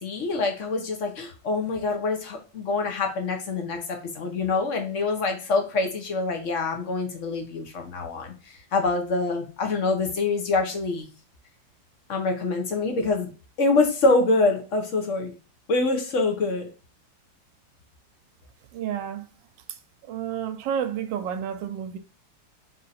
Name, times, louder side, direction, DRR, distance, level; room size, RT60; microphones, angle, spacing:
voice 1, 0.0-11.1 12.1-13.3 13.6-15.3 15.7-16.7, left 3 dB, 50° left, 1.1 m, -25 dB
voice 2, 18.7-19.2 20.1-22.0, right 9 dB, 80° right, 1.2 m, -30 dB
3.8 x 2.8 x 4.1 m
omnidirectional pair, 2.0 m